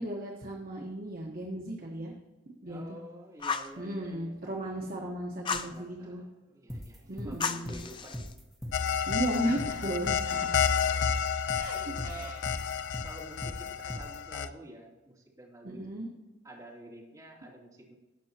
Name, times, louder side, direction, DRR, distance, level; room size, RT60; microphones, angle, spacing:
voice 1, 0.0-2.1 2.6-2.8 3.8-6.2 7.1-7.8 9.1-10.7 11.5-12.4 15.6-16.1, right 1 dB, 50° right, -1 dB, 1.2 m, -35 dB
voice 2, 2.6-4.4 5.6-8.3 9.6-10.1 10.4-10.7 11.7-12.5 12.8-15.8 16.4-17.9, right 1 dB, 20° right, -6 dB, 2.9 m, -49 dB
Fire, 3.4-3.8 5.5-5.8 7.4-8.3, left 5 dB, 25° left, 0.5 m, -33 dB
sound 1, 6.7-14.2, equal, ahead, 1.3 m, -40 dB
sound 2, 8.7-14.5, left 7 dB, 80° left, 0.5 m, -31 dB
18.0 x 6.2 x 2.9 m, 1.1 s
head